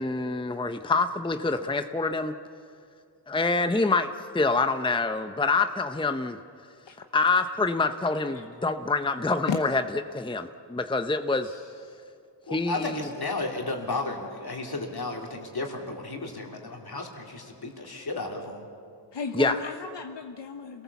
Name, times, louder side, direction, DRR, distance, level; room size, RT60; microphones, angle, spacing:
voice 1, 0.0-2.3 3.3-6.4 7.1-9.8 10.1-11.5 12.5-13.0 19.3-19.6, left 3 dB, 10° left, 9 dB, 0.7 m, -26 dB
voice 2, 11.4-12.0 19.1-20.8, left 5 dB, 75° left, 5 dB, 1.0 m, -35 dB
voice 3, 12.5-18.7, left 2 dB, 55° left, 1 dB, 3.2 m, -33 dB
26.5 x 18.5 x 7.1 m, 2.4 s
wide cardioid pair, 80°, 44 cm